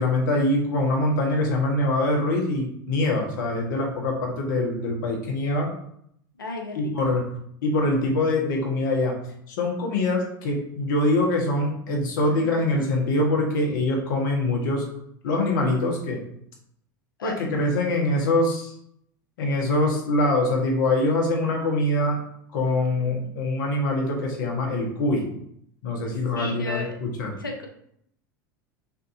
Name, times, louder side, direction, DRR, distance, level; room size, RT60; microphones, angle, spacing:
voice 1, 0.0-5.7 6.7-7.2 7.6-9.2 9.5-14.8 15.2-16.2 17.2-18.8 19.4-22.2 22.5-25.3 25.8-27.3, left 2 dB, 70° left, 0 dB, 1.4 m, -24 dB
voice 2, 6.4-7.1 12.3-12.8 17.2-17.3 22.9-23.3 26.3-26.9 27.4-27.7, left 2 dB, 90° left, 1 dB, 1.0 m, -35 dB
6.4 x 2.8 x 2.8 m, 0.71 s
hypercardioid pair, 85°, 11 cm